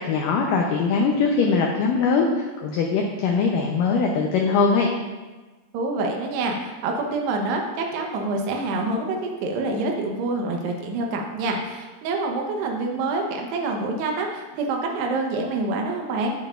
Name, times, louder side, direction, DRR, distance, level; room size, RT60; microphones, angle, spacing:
voice 1, 0.1-4.9, left 4 dB, 80° left, 1 dB, 1.9 m, -21 dB
voice 2, 5.7-16.3, right 3 dB, 90° right, 1 dB, 3.1 m, -26 dB
16.5 x 6.0 x 2.5 m, 1.2 s
omnidirectional pair, 4.7 m